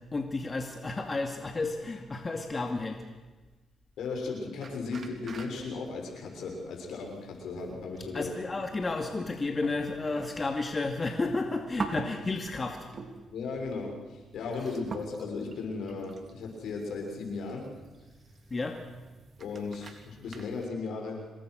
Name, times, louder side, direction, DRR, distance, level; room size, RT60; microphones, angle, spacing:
voice 1, 0.1-3.0 8.1-12.9 18.5-18.8, left 3 dB, 30° left, 4 dB, 2.4 m, -32 dB
voice 2, 4.0-8.3 13.3-17.7 19.4-21.3, left 4 dB, 75° left, 1 dB, 6.4 m, -36 dB
sound 1, 4.6-20.7, right 4 dB, 50° right, 3.3 m, -46 dB
26.5 x 21.0 x 6.5 m, 1.2 s
cardioid pair, 75°, 0 cm